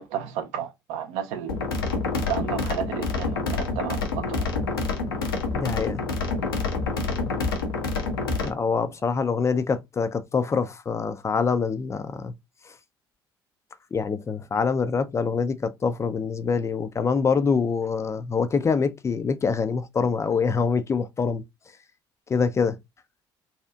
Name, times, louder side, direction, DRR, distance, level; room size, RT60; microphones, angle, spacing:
voice 1, 0.0-1.6 2.3-4.4, right 9 dB, 60° right, 0.6 m, -32 dB
sound 1, 1.5-8.5, left 3 dB, 75° left, 0.6 m, -27 dB
voice 2, 5.5-6.0 8.4-12.3 13.9-21.4 22.3-22.8, left 5 dB, 25° left, 0.3 m, -25 dB
2.7 x 2.4 x 2.2 m
figure-of-eight pair, 55°, 12 cm